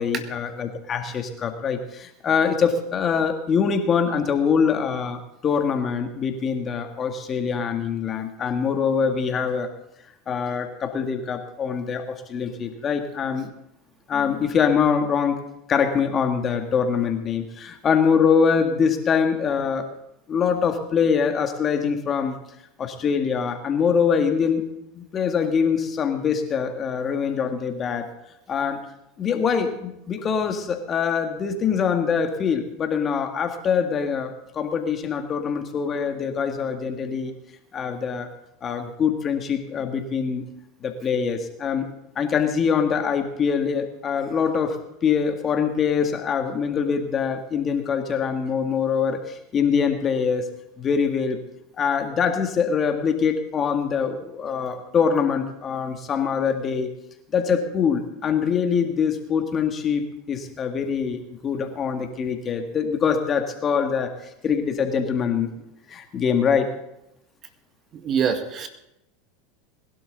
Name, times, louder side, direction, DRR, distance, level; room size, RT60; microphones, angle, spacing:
voice 1, 0.0-9.7 10.3-13.5 14.1-15.4 15.7-19.9 20.3-22.4 22.8-24.6 24.9-28.1 28.5-28.9 29.2-37.3 37.7-38.3 38.6-40.5 40.8-41.9 42.2-50.5 50.8-51.4 51.8-56.9 57.3-64.1 64.4-65.5 65.9-66.7, left 6 dB, 35° left, 6 dB, 2.0 m, -24 dB
voice 2, 67.9-68.7, right 7 dB, 40° right, 7 dB, 2.0 m, -24 dB
21.5 x 12.0 x 4.0 m, 0.83 s
hypercardioid pair, 95°, 0 cm